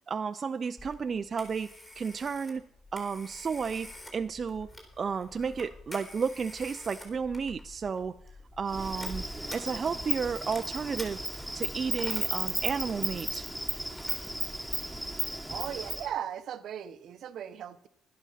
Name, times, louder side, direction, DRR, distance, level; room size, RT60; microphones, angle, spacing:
voice 1, 0.1-2.6 2.9-4.7 5.0-8.2 8.6-9.2 9.5-11.2 11.5-13.5, right 6 dB, 45° right, 9 dB, 0.5 m, -32 dB
Telephone, 0.8-15.0, left 1 dB, 25° left, 3.6 m, -48 dB
Insect, 8.7-16.1, right 1 dB, ahead, 1.5 m, -34 dB
voice 2, 15.5-17.9, right 9 dB, 70° right, 12 dB, 0.8 m, -37 dB
11.5 x 11.0 x 5.6 m, 0.68 s
cardioid pair, 90°, 0 cm